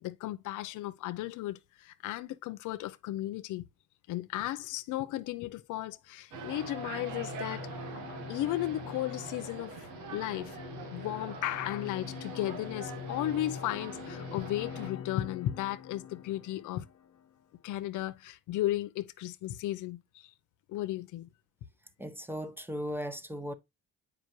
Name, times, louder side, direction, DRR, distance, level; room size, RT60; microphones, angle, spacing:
voice 1, 0.0-3.6 4.1-7.7 8.3-9.7 10.1-10.6 10.9-16.8 17.6-20.3 20.7-21.3, left 14 dB, 90° left, 0.6 m, -35 dB
sound 1, 6.3-17.3, left 7 dB, 55° left, 0.9 m, -44 dB
sound 2, 6.3-14.9, right 6 dB, 85° right, 1.5 m, -44 dB
voice 2, 22.0-23.5, equal, 5° right, 0.9 m, -37 dB
7.9 x 5.1 x 3.0 m
cardioid pair, 90°, 30 cm